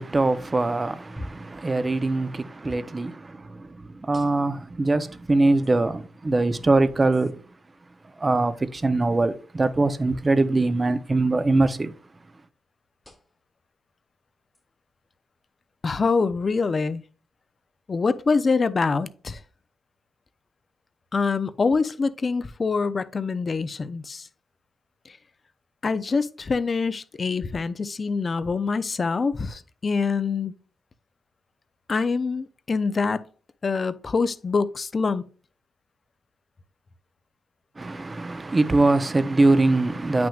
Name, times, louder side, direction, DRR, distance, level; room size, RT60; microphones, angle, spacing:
voice 1, 0.0-7.4 8.2-11.9 37.8-40.3, right 2 dB, 25° right, 0.7 m, -22 dB
sound 1, 1.2-1.5 2.6-2.9 4.1-4.6 5.6-5.7 7.1-7.3 10.1-10.3 11.5-11.8 13.0-13.4 14.5-14.6 16.0-16.2, left 1 dB, 10° left, 1.2 m, -43 dB
voice 2, 15.8-17.0 17.9-19.4 21.1-24.3 25.1-25.2 25.8-30.5 31.9-33.2 33.6-35.2, left 4 dB, 35° left, 0.5 m, -25 dB
8.6 x 6.0 x 2.4 m
cardioid pair, 85°, 0 cm